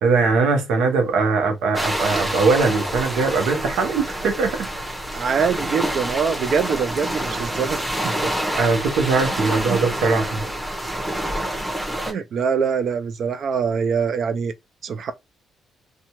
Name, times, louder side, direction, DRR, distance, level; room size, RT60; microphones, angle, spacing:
voice 1, 0.0-4.7 8.5-10.5 12.1-12.2, right 4 dB, 85° right, 0.8 m, -21 dB
sound 1, 1.7-12.1, right 1 dB, 5° right, 1.0 m, -27 dB
voice 2, 5.1-8.3 9.4-9.8 12.0-14.5 14.8-15.1, right 6 dB, 60° right, 0.4 m, -24 dB
2.7 x 2.3 x 2.9 m
cardioid pair, 90°, 0 cm